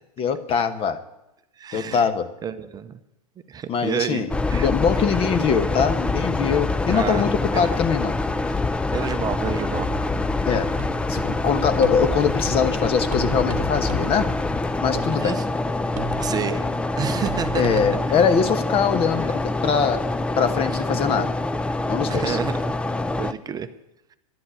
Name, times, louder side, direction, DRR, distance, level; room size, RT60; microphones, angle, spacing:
voice 1, 0.2-1.0 1.7-2.3 3.7-8.1 10.5-10.7 11.1-14.3 14.8-15.4 17.5-20.0 20.3-21.3 21.9-22.4, left 6 dB, 30° left, 11 dB, 1.1 m, -22 dB
voice 2, 1.6-2.1 2.4-3.0 3.5-4.2 4.5-4.7 6.9-7.3 7.5-7.7 8.9-9.9 15.0-15.4 16.2-16.7 17.0-17.6 22.1-22.6 23.2-23.7, right 7 dB, 20° right, 10 dB, 0.8 m, -29 dB
sound 1, 4.3-23.3, left 2 dB, 5° left, 0.4 m, -25 dB
sound 2, 9.8-18.0, right 7 dB, 60° right, 1.0 m, -36 dB
11.5 x 7.8 x 8.8 m, 0.90 s
hypercardioid pair, 110°, 19 cm